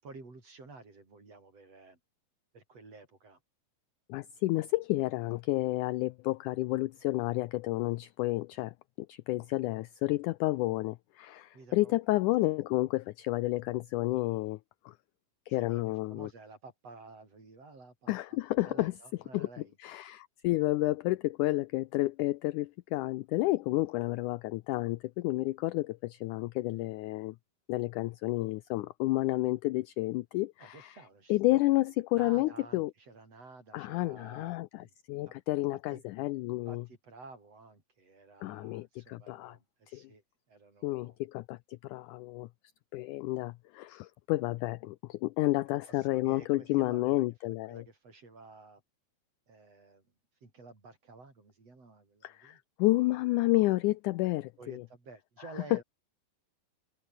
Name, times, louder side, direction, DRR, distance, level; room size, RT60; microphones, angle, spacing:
voice 1, 0.0-2.0 2.5-3.4 11.5-12.0 15.5-19.8 30.6-31.6 32.2-34.9 35.3-35.4 35.7-36.0 36.7-41.2 46.0-47.3 47.7-48.8 49.5-50.1 50.4-52.6 54.6-55.8, right 3 dB, 40° right, 7.3 m, -52 dB
voice 2, 4.1-14.6 14.9-15.0 15.5-16.3 18.1-18.9 19.3-19.5 19.8-27.4 27.7-30.9 31.3-32.9 33.7-36.8 38.4-39.6 39.9-40.0 40.8-42.5 42.9-47.8 52.2-54.8 55.7-55.8, left 19 dB, 85° left, 1.8 m, -30 dB
omnidirectional pair, 4.2 m